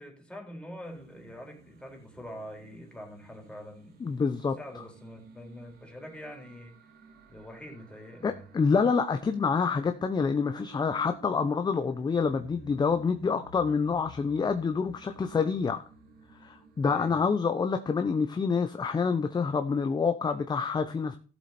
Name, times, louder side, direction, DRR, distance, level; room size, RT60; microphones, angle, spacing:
voice 1, 0.0-4.0 4.6-6.7 7.3-8.5 16.8-17.2, equal, 5° left, 2 dB, 4.0 m, -44 dB
sound 1, 0.8-17.2, right 3 dB, 70° right, 2.7 m, -54 dB
voice 2, 4.0-4.6 8.2-15.8 16.4-21.2, left 5 dB, 25° left, 8 dB, 0.8 m, -27 dB
14.0 x 7.6 x 4.3 m, 0.37 s
cardioid pair, 110°, 17 cm